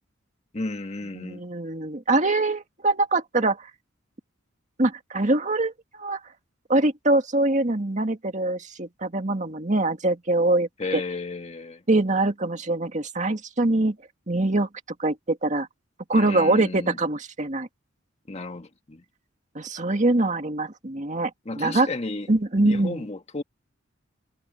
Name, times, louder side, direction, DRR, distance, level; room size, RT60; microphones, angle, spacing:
voice 1, 0.5-1.4 10.8-11.8 16.1-17.0 18.3-19.0 21.5-22.3 22.6-23.4, left 3 dB, 35° left, 1.6 m, -33 dB
voice 2, 1.1-3.7 4.8-5.7 6.0-6.2 6.7-11.0 11.9-14.0 14.3-14.7 15.0-15.7 16.1-17.7 19.6-21.3 21.6-21.9 22.3-23.1, right 2 dB, 40° right, 1.9 m, -23 dB
head